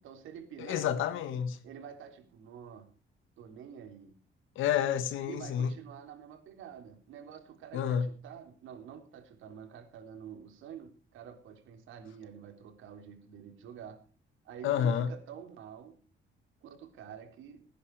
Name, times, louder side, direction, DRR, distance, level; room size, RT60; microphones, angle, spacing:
voice 1, 0.0-0.9 1.6-2.9 3.4-4.2 5.3-14.0 14.4-16.0 16.6-17.7, right 8 dB, 85° right, 3.7 m, -48 dB
voice 2, 0.6-1.6 4.5-5.7 7.7-8.1 14.6-15.1, left 9 dB, 90° left, 1.8 m, -29 dB
19.5 x 10.0 x 4.9 m
cardioid pair, 90°, 20 cm